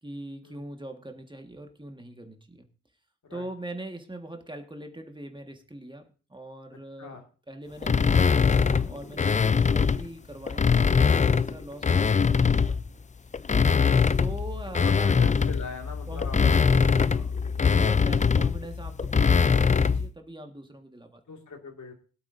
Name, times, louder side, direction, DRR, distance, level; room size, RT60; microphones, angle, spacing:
voice 1, 0.0-2.7 3.3-7.2 7.5-12.8 13.4-13.5 14.2-15.4 16.1-17.3 17.6-21.2, right 1 dB, 15° right, 4 dB, 1.7 m, -42 dB
sound 1, 7.8-10.1 10.5-12.9 13.3-20.1, left 5 dB, 20° left, 0.4 m, -22 dB
voice 2, 14.8-16.5 16.9-17.3 21.3-21.9, left 4 dB, 55° left, 3 dB, 2.3 m, -41 dB
22.0 x 8.2 x 2.7 m, 0.38 s
cardioid pair, 65°, 34 cm